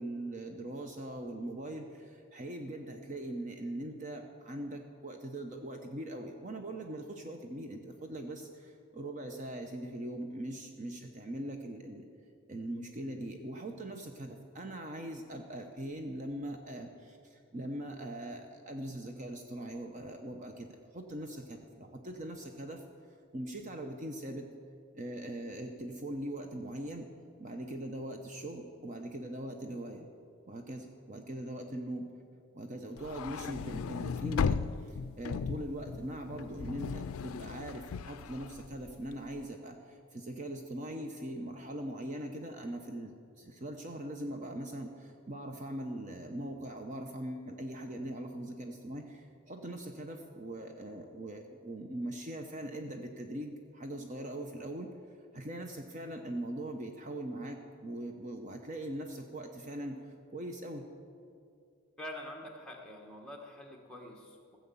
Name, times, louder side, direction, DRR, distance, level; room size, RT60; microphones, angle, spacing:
voice 1, 0.0-12.1 12.5-22.8 23.3-24.5 24.9-27.1 27.4-30.1 30.5-32.1 32.5-54.9 55.3-60.0 60.3-60.8, right 1 dB, 35° right, 4 dB, 0.7 m, -41 dB
sound 1, 33.0-39.3, left 6 dB, 75° left, 0.4 m, -36 dB
voice 2, 62.0-64.6, left 1 dB, 5° left, 0 dB, 1.4 m, -46 dB
15.0 x 7.8 x 7.0 m, 2.4 s
head